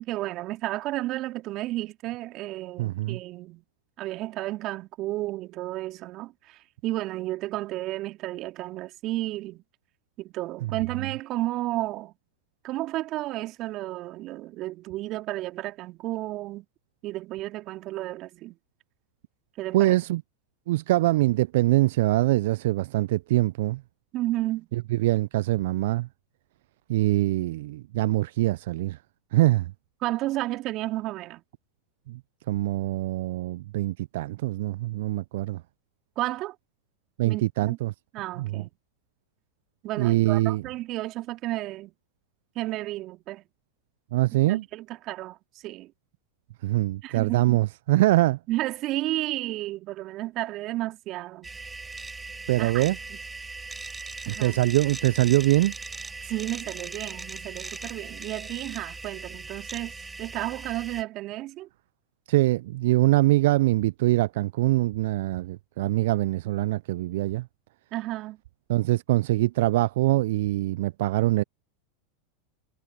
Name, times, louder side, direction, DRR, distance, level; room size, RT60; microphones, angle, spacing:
voice 1, 0.0-3.6 4.0-9.6 10.2-12.1 12.6-16.6 17.0-18.6 19.6-20.0 24.1-24.7 30.0-31.4 36.2-36.6 37.2-37.8 38.1-38.7 39.8-41.9 42.5-43.4 44.5-45.9 47.0-47.6 48.5-51.5 52.6-52.8 53.1-53.2 54.2-54.6 56.2-61.7 67.9-68.4, right 17 dB, 45° right, 2.8 m, -32 dB
voice 2, 2.8-3.2 10.6-10.7 19.7-20.2 20.7-23.8 24.9-26.1 26.9-29.0 29.3-29.7 32.1-32.2 32.5-35.6 37.2-37.9 38.4-38.6 40.0-40.6 44.1-44.6 46.6-48.4 52.5-53.0 54.3-55.8 62.3-67.5 68.7-71.4, right 17 dB, 65° right, 0.4 m, -23 dB
sound 1, 51.4-61.0, right 3 dB, 15° right, 7.2 m, -39 dB
hypercardioid pair, 95°, 0 cm